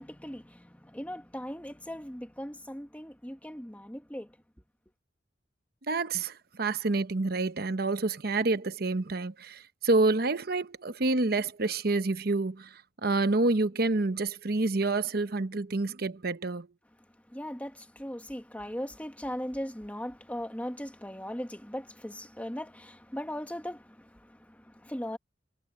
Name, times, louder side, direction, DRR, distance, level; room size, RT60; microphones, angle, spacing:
voice 1, 0.0-4.3 17.3-25.2, equal, 10° left, 1.6 m, -39 dB
voice 2, 5.9-16.7, right 3 dB, 60° right, 1.0 m, -28 dB
head